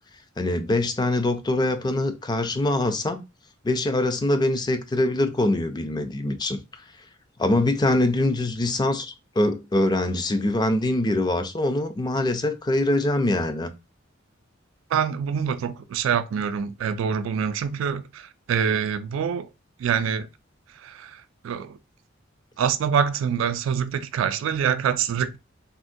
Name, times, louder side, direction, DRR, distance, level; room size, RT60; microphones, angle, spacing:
voice 1, 0.4-3.2 3.6-6.6 7.4-13.7, left 1 dB, 20° left, 0.4 m, -23 dB
voice 2, 14.9-18.0 18.5-19.5 19.8-20.3 21.4-21.7 22.6-25.4, right 7 dB, 80° right, 0.3 m, -25 dB
3.5 x 2.1 x 2.5 m
head